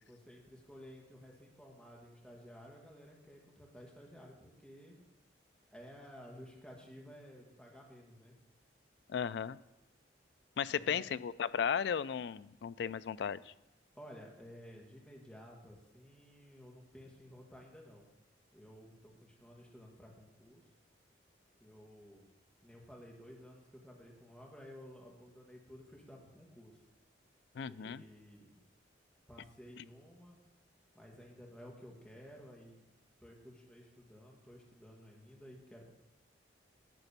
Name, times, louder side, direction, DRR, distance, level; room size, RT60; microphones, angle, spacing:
voice 1, 0.1-5.0 5.7-8.4 10.7-11.1 13.9-18.1 18.5-20.6 21.6-22.2 22.6-26.8 27.7-28.5 29.3-30.4 30.9-32.8 33.2-35.8, equal, 5° left, -2 dB, 1.5 m, -54 dB
voice 2, 9.1-9.6 10.6-13.5 27.6-28.0, left 7 dB, 65° left, 16 dB, 0.3 m, -35 dB
11.5 x 4.1 x 6.7 m, 0.99 s
head